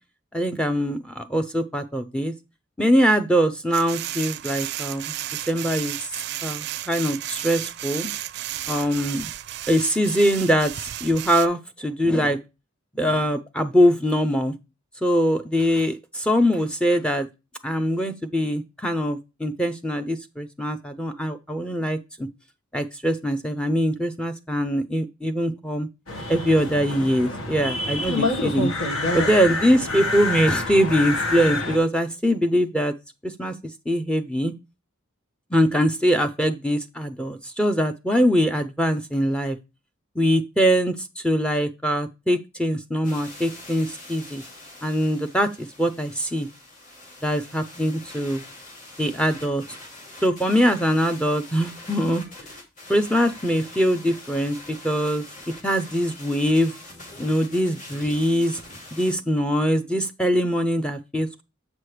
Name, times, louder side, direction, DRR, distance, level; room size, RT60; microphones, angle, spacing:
voice 1, 0.3-2.3 2.8-5.1 5.5-6.1 6.4-8.1 8.7-9.3 9.7-12.4 13.0-14.5 15.0-17.3 17.6-22.3 22.7-25.9 26.3-28.7 29.1-32.9 33.2-33.5 33.9-34.5 35.5-39.6 40.2-44.4 44.8-46.5 47.2-48.4 49.0-49.8 50.2-52.2 52.9-55.2 55.6-56.7 57.2-58.6 58.9-61.4, equal, 5° left, 6 dB, 0.5 m, -22 dB
sound 1, 3.7-11.5, right 13 dB, 50° right, 0.4 m, -33 dB
sound 2, 26.1-31.8, left 2 dB, 85° left, 1.6 m, -27 dB
sound 3, 43.0-59.1, left 2 dB, 35° left, 2.4 m, -44 dB
7.6 x 6.2 x 3.2 m, 0.26 s
head